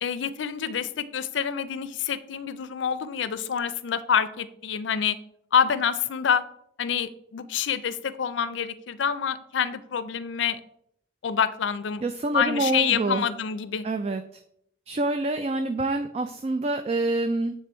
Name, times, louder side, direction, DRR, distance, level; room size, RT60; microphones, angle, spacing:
voice 1, 0.0-5.2 5.5-6.4 6.8-10.6 11.2-12.0 12.3-13.9, left 7 dB, 85° left, 15 dB, 0.4 m, -27 dB
voice 2, 12.0-13.3 13.8-14.4 14.9-17.5, right 2 dB, 35° right, 8 dB, 0.3 m, -26 dB
8.3 x 3.3 x 4.3 m, 0.72 s
head